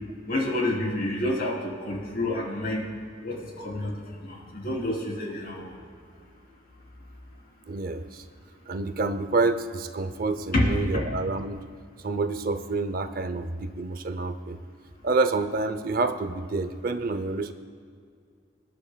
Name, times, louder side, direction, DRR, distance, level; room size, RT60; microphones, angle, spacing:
voice 1, 0.3-2.8 3.2-3.9 4.2-5.8 10.5-10.9, left 1 dB, 55° left, -3 dB, 3.4 m, -28 dB
voice 2, 7.7-8.2 8.7-11.6 12.0-14.6 15.0-17.5, right 3 dB, 55° right, 11 dB, 0.6 m, -28 dB
26.0 x 10.5 x 2.3 m, 2.2 s
head